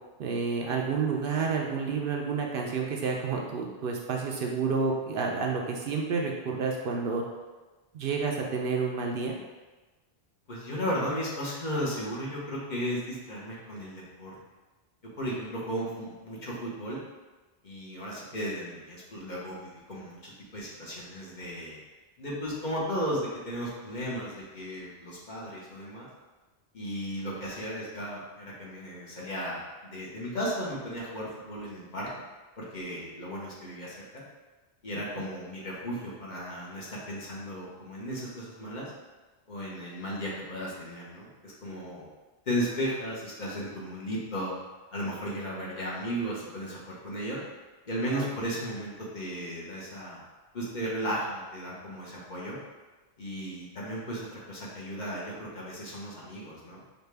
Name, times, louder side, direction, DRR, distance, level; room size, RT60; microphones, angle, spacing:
voice 1, 0.2-7.2 7.9-9.4 35.2-35.3 48.2-48.3, right 5 dB, 65° right, 0 dB, 0.7 m, -30 dB
voice 2, 10.5-14.3 15.2-17.0 17.6-21.8 22.2-26.1 26.7-29.6 29.9-32.1 32.6-34.2 34.8-38.9 39.5-42.1 42.5-44.5 44.9-47.4 47.9-50.2 50.5-52.6 53.2-56.8, equal, 50° left, -6 dB, 1.1 m, -35 dB
5.1 x 2.4 x 3.3 m, 1.2 s
omnidirectional pair, 1.1 m